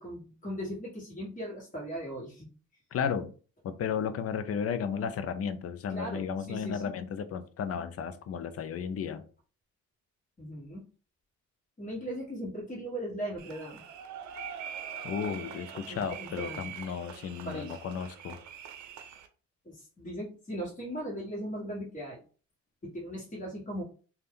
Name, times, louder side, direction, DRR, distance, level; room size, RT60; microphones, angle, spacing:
voice 1, 0.0-2.5 5.9-6.8 10.4-10.8 11.8-13.8 15.9-16.6 17.4-17.8 19.6-22.2 22.8-23.8, equal, 25° left, -3 dB, 1.4 m, -38 dB
voice 2, 2.9-3.3 3.6-9.3 15.0-18.4, left 7 dB, 50° left, 11 dB, 0.5 m, -34 dB
sound 1, 13.4-19.3, right 8 dB, 70° right, 0.6 m, -43 dB
2.5 x 2.3 x 3.5 m, 0.37 s
cardioid pair, 90°, 30 cm